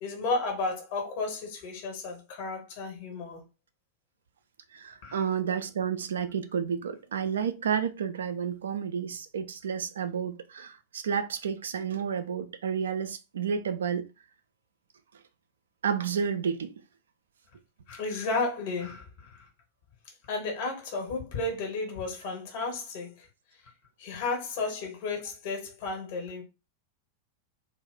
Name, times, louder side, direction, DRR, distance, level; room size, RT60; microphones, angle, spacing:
voice 1, 0.0-3.4 5.0-5.2 17.9-19.5 20.3-23.3 24.0-26.4, left 3 dB, 50° left, 1.0 m, -33 dB
voice 2, 4.7-14.1 15.8-16.7 22.3-22.4, right 7 dB, 65° right, 0.3 m, -31 dB
2.3 x 2.0 x 3.5 m
figure-of-eight pair, 90°, 0 cm